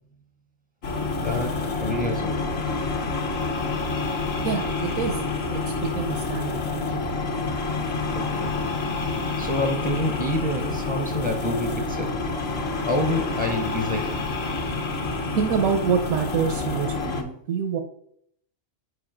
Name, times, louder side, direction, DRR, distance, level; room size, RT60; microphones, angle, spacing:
sound 1, 0.8-17.2, left 3 dB, 55° left, 1.1 m, -28 dB
voice 1, 1.2-2.5 8.1-8.7 9.4-12.5 12.9-14.3, left 1 dB, 25° left, 0.7 m, -28 dB
voice 2, 4.4-5.2 5.5-7.1 15.3-17.8, right 6 dB, 90° right, 1.2 m, -26 dB
6.7 x 5.0 x 5.0 m
omnidirectional pair, 1.4 m